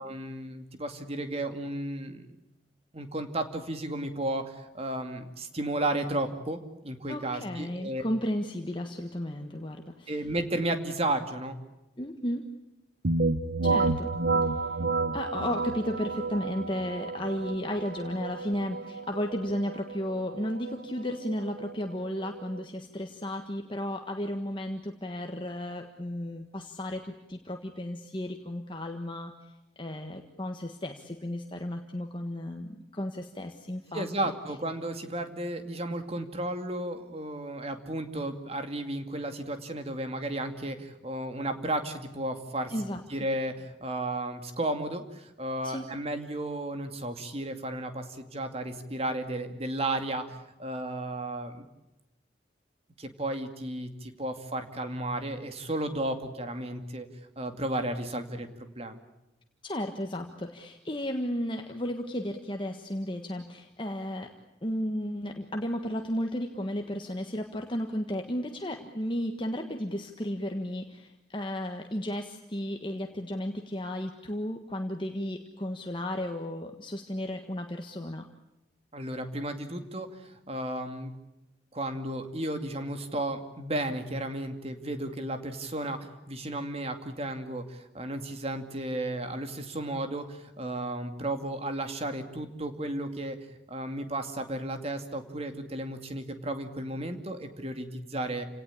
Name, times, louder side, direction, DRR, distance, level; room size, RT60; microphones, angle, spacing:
voice 1, 0.0-2.3 2.9-8.0 10.1-11.6 33.9-51.7 53.0-57.1 57.4-59.0 78.9-81.1 81.7-86.0 86.3-93.4 93.7-98.4, right 1 dB, 35° right, 7 dB, 2.4 m, -33 dB
voice 2, 7.1-10.3 12.0-12.5 13.6-14.1 14.4-14.8 15.1-34.1 42.7-43.0 45.6-45.9 59.6-64.3 64.6-78.3, left 1 dB, 25° left, 4 dB, 1.5 m, -34 dB
sound 1, 13.0-22.6, right 3 dB, 65° right, 1.4 m, -31 dB
29.0 x 18.0 x 8.5 m, 0.95 s
head